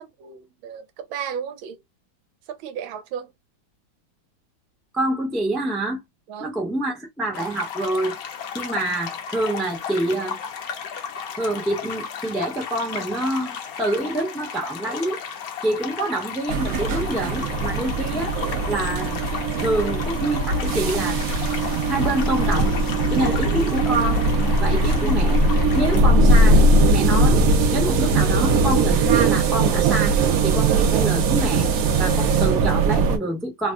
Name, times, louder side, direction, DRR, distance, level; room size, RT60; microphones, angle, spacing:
voice 1, 0.0-1.8 2.5-3.3 6.3-6.5, right 8 dB, 90° right, 1.4 m, -34 dB
voice 2, 4.9-6.0 6.4-8.2 8.5-10.4 11.4-15.2 15.6-18.3 18.7-19.2 19.6-21.2 21.9-22.7 23.1-24.3 24.6-25.4 25.7-26.6 26.9-27.4 27.7-30.2 30.4-31.7 32.0-33.7, right 1 dB, ahead, 0.5 m, -26 dB
sound 1, 7.3-26.0, left 7 dB, 65° left, 0.9 m, -34 dB
sound 2, 16.5-33.2, right 2 dB, 70° right, 0.9 m, -20 dB
3.3 x 2.1 x 2.3 m
omnidirectional pair, 2.2 m